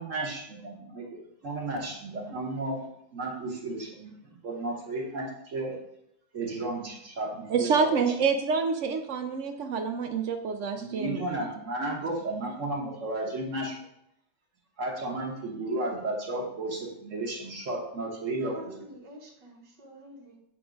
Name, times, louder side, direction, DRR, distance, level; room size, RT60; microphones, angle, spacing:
voice 1, 0.0-2.9 3.1-5.8 6.3-7.9 10.8-13.8 14.8-18.6, right 2 dB, 50° right, -1 dB, 1.4 m, -33 dB
voice 2, 7.5-11.2, right 5 dB, 65° right, 6 dB, 0.7 m, -27 dB
voice 3, 18.4-20.4, right 1 dB, 85° right, -1 dB, 1.9 m, -47 dB
7.6 x 3.6 x 5.1 m, 0.76 s
omnidirectional pair, 1.8 m